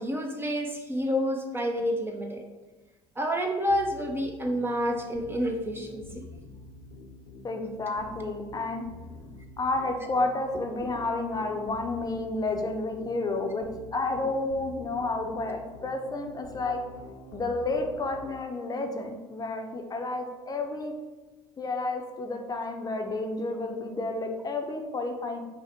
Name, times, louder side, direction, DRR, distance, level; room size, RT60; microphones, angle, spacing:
voice 1, 0.0-2.4 3.2-6.2, equal, 15° right, 3 dB, 0.6 m, -29 dB
sound 1, 3.7-18.3, left 2 dB, 75° left, 0.7 m, -47 dB
voice 2, 7.4-8.8 9.6-13.7 13.9-16.8 17.3-20.9 21.6-25.4, left 2 dB, 25° left, 3 dB, 0.7 m, -31 dB
5.5 x 2.1 x 4.3 m, 1.2 s
hypercardioid pair, 60°, 15 cm